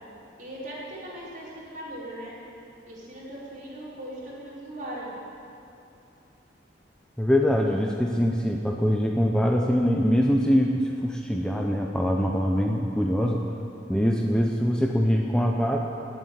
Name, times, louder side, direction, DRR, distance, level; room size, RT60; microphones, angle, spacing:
voice 1, 0.4-2.4 2.9-5.1, right 1 dB, 45° right, -7 dB, 5.1 m, -39 dB
voice 2, 7.2-13.4 13.9-15.8, equal, 5° left, 0 dB, 0.8 m, -23 dB
18.5 x 8.0 x 9.3 m, 2.8 s
head